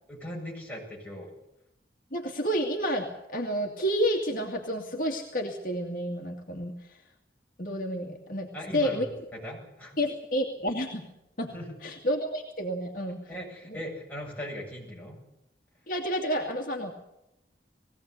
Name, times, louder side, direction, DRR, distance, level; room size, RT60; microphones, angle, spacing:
voice 1, 0.1-1.3 8.5-10.0 11.5-11.7 13.3-15.2, equal, 10° left, -3 dB, 7.7 m, -39 dB
voice 2, 2.1-6.7 7.6-9.1 10.0-11.1 11.4-11.5 11.8-13.2 13.7-13.8 15.9-16.9, equal, 50° left, 1 dB, 2.3 m, -30 dB
21.5 x 16.5 x 8.4 m, 0.87 s
head